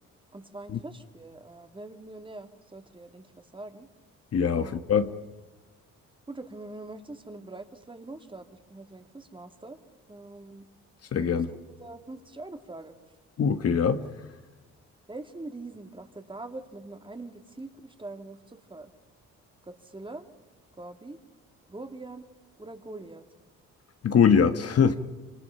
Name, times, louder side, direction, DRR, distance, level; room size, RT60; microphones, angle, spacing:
voice 1, 0.3-3.3 3.5-3.9 4.5-4.8 6.3-9.8 10.1-10.7 11.2-11.4 11.8-12.9 15.1-18.9 19.6-20.2 20.8-21.2 21.7-22.3 22.6-23.2, right 2 dB, 15° right, 2.2 m, -43 dB
voice 2, 4.3-5.1 11.1-11.5 13.4-14.0 24.0-25.0, left 6 dB, 55° left, 1.5 m, -22 dB
26.5 x 26.0 x 5.7 m
cardioid pair, 90°, 30 cm